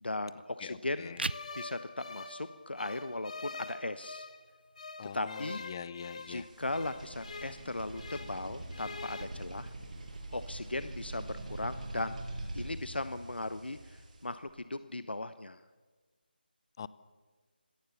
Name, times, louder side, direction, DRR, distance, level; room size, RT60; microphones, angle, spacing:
voice 1, 0.0-1.2 1.5-4.3 5.1-5.6 6.3-9.7 10.3-12.2 12.5-15.6, left 2 dB, 80° left, 12 dB, 1.0 m, -38 dB
voice 2, 0.6-1.2 5.0-6.5 16.8-16.9, left 7 dB, 25° left, 18 dB, 0.6 m, -44 dB
sound 1, 1.0-12.0, right 2 dB, 80° right, 0.7 m, -48 dB
sound 2, 1.2-4.4 4.8-8.4 8.7-9.2, left 4 dB, 45° left, 1.9 m, -45 dB
sound 3, 6.2-14.4, right 2 dB, 45° right, 6.0 m, -44 dB
25.5 x 17.5 x 6.9 m, 1.4 s
figure-of-eight pair, 160°, 5 cm